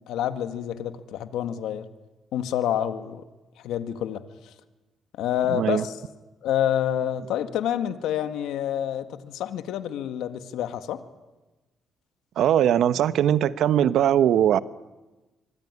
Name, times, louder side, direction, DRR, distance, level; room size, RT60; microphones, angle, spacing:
voice 1, 0.1-1.9 2.3-3.2 3.6-4.2 5.2-5.9 6.4-11.0, left 10 dB, 85° left, 9 dB, 1.7 m, -28 dB
voice 2, 5.5-5.8 12.4-14.6, right 10 dB, 75° right, 14 dB, 1.0 m, -20 dB
25.5 x 23.0 x 9.7 m, 1.1 s
cardioid pair, 90°, 0 cm